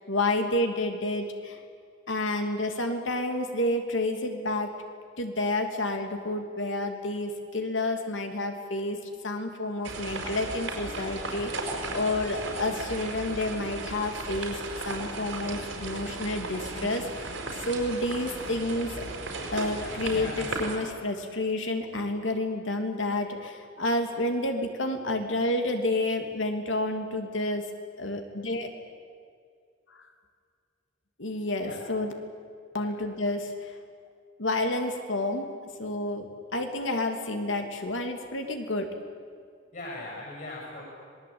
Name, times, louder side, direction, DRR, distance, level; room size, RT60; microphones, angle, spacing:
voice 1, 0.1-1.6 2.1-4.7 5.2-9.0 9.2-17.3 17.6-18.9 19.5-27.6 28.0-28.7 30.0-30.1 31.2-32.1 32.7-33.7 34.4-35.5 35.8-36.2 36.5-38.9, left 2 dB, 75° left, 5 dB, 2.9 m, -29 dB
sound 1, 9.8-20.8, right 3 dB, 85° right, 5.1 m, -36 dB
voice 2, 18.5-20.6 31.6-31.8 32.8-32.9 39.7-40.8, left 2 dB, 45° left, -3 dB, 7.6 m, -41 dB
26.0 x 20.0 x 8.9 m, 2.2 s
head